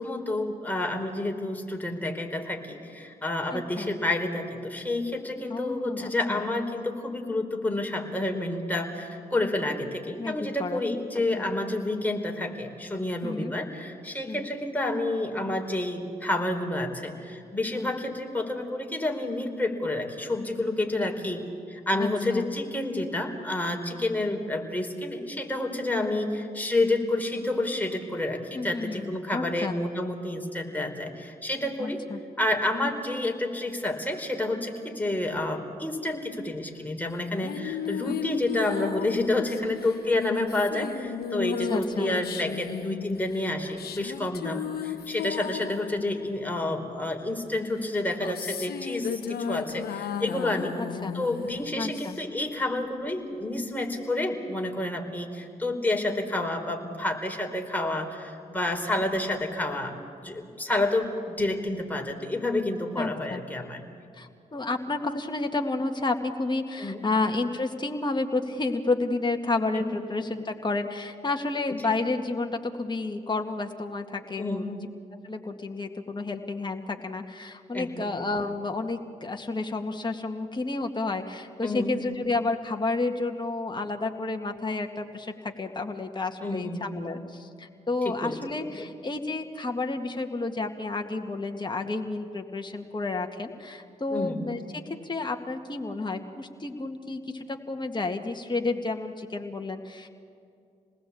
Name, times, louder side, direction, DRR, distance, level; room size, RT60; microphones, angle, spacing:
voice 1, 0.0-32.0 32.4-50.7 51.1-60.0 60.2-63.8 66.8-67.0 69.7-70.0 71.7-71.8 74.4-74.7 77.7-78.1 81.6-81.9 86.4-86.9 88.0-88.4 88.8-88.9 94.1-94.4, left 2 dB, 10° left, 2 dB, 4.6 m, -29 dB
voice 2, 3.5-3.9 5.5-6.4 10.2-10.8 11.2-11.5 13.2-13.5 14.3-14.5 17.7-17.9 21.9-22.5 26.0-26.3 28.5-29.8 31.8-32.2 41.5-42.1 50.8-51.1 51.8-52.2 63.0-63.4 64.1-74.8 75.2-100.1, left 3 dB, 25° left, 3 dB, 2.1 m, -31 dB
sound 1, 37.1-47.0 47.8-52.5, left 8 dB, 65° left, 1.1 m, -35 dB
28.0 x 19.5 x 8.7 m, 2.4 s
hypercardioid pair, 40°, 17 cm